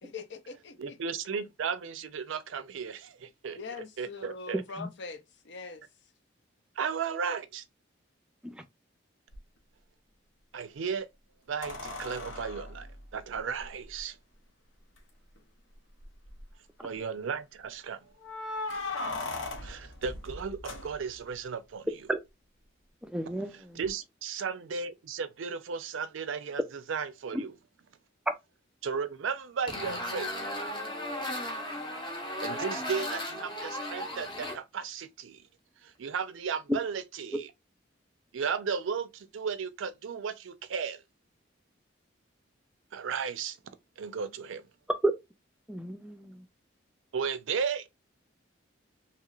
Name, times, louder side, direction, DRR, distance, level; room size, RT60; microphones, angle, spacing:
voice 1, 0.0-1.0 3.6-5.9, left 4 dB, 65° left, 0.5 m, -42 dB
voice 2, 0.8-3.6 4.0-4.6 6.8-7.6 10.5-11.1 11.5-14.2 16.8-18.1 19.6-22.0 23.5-27.5 28.8-30.7 32.4-35.4 35.8-37.5 38.3-41.0 42.9-43.6 44.0-44.7 47.1-47.9, right 6 dB, 85° right, 0.4 m, -35 dB
voice 3, 4.5-4.9 8.4-8.6 22.1-22.2 23.0-23.7 36.7-36.8 45.0-45.1 45.7-46.4, right 1 dB, 5° right, 0.3 m, -31 dB
sound 1, 9.3-9.4 11.6-14.0 15.0-15.1 15.4-15.5 16.0-16.5 18.2-21.4 23.8-23.9, left 2 dB, 85° left, 0.8 m, -38 dB
sound 2, 29.7-34.5, left 1 dB, 25° left, 0.8 m, -35 dB
2.9 x 2.9 x 2.4 m
head